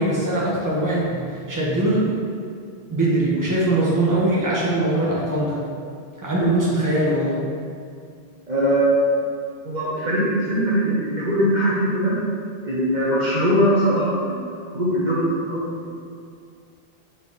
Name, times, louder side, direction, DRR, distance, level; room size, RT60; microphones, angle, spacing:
voice 1, 0.0-2.1 2.9-5.6 6.2-7.4, right 1 dB, 20° right, -7 dB, 1.3 m, -21 dB
voice 2, 8.5-8.9 9.6-12.1 12.6-14.4 14.7-15.7, equal, 45° right, -9 dB, 1.3 m, -21 dB
5.6 x 4.2 x 4.2 m, 2.3 s
omnidirectional pair, 1.1 m